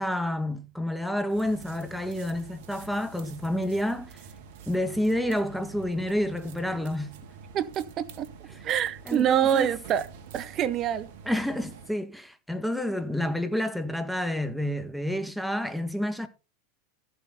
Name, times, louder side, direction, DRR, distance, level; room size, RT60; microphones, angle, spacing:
voice 1, 0.0-4.2 4.7-7.1 9.1-9.7 11.3-16.3, left 1 dB, ahead, 1.9 m, -29 dB
sound 1, 1.3-11.9, right 6 dB, 60° right, 1.8 m, -47 dB
voice 2, 7.5-8.3 8.6-10.1 10.3-11.1, right 10 dB, 40° right, 1.2 m, -26 dB
14.5 x 8.2 x 4.0 m
figure-of-eight pair, 85°, 0 cm